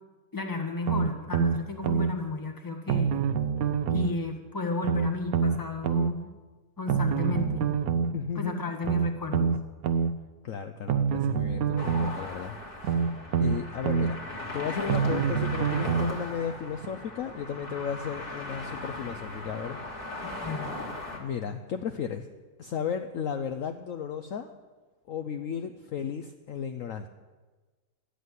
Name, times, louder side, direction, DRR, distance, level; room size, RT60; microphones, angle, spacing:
voice 1, 0.3-3.2 3.9-6.3 6.8-7.7 8.3-9.5 20.2-20.9, left 3 dB, 10° left, 4 dB, 1.2 m, -33 dB
sound 1, 0.9-2.1 2.9-4.1 4.8-6.1 6.9-8.1 8.8-10.1 10.9-12.1 12.8-14.1 14.9-16.1 16.8-16.9, right 6 dB, 65° right, 0.9 m, -26 dB
voice 2, 8.1-8.6 10.4-12.5 12.8-13.0 13.4-14.2 14.5-19.8 21.1-22.3 22.6-24.5 25.1-27.1, left 7 dB, 70° left, 7 dB, 0.8 m, -34 dB
sound 2, 11.8-21.2, left 2 dB, 30° left, 2.0 m, -38 dB
12.5 x 8.3 x 9.4 m, 1.3 s
omnidirectional pair, 2.1 m